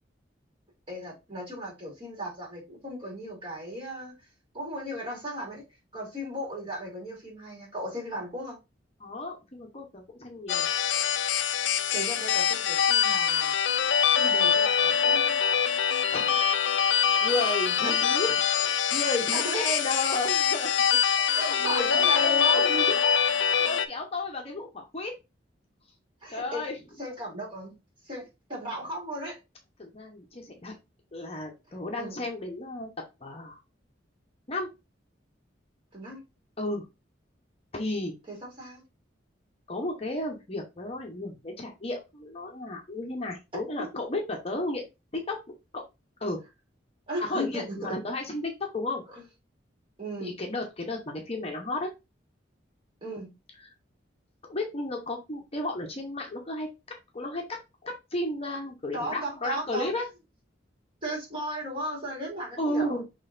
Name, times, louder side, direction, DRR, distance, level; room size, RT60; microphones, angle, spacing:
voice 1, 0.9-4.1 4.5-5.6 5.9-8.6 11.9-13.5 14.2-15.3 17.8-17.9 19.3-19.7 21.3-22.8 26.2-26.7 27.0-27.7 28.0-29.4 32.0-32.2 35.9-36.2 38.3-38.8 43.5-43.6 47.1-48.0 49.1-49.2 50.0-50.3 53.0-53.3 58.9-59.9 61.0-63.0, equal, 30° right, -3 dB, 3.0 m, -36 dB
voice 2, 9.0-10.7 16.1-16.4 16.8-20.7 21.2-23.2 23.6-25.1 26.3-26.8 29.8-30.7 31.1-32.9 33.2-33.6 34.5-34.7 36.6-36.8 37.7-38.1 39.7-44.9 45.1-45.4 45.7-45.8 46.2-46.4 47.2-49.0 50.2-51.9 53.6-53.7 54.5-56.7 57.1-60.1 62.6-63.0, left 2 dB, 35° left, 2 dB, 0.9 m, -33 dB
sound 1, 10.5-23.9, left 8 dB, 70° left, 0.5 m, -24 dB
6.2 x 3.2 x 2.6 m, 0.25 s
head